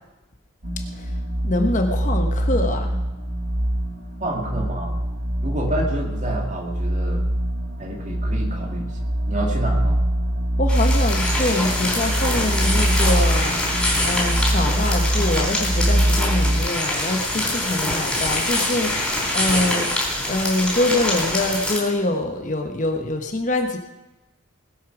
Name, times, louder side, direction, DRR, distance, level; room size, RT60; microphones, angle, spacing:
sound 1, 0.6-16.7, right 1 dB, 50° right, 1.6 m, -23 dB
voice 1, 1.4-3.0 10.6-19.9 20.3-23.8, left 2 dB, 35° left, 4 dB, 1.1 m, -24 dB
voice 2, 4.2-5.0 5.4-7.2 7.8-8.9 9.3-10.0, right 1 dB, 35° right, 1 dB, 2.2 m, -29 dB
sound 2, 10.7-21.8, left 1 dB, 5° left, 3.9 m, -24 dB
20.0 x 8.5 x 6.0 m, 1.0 s
head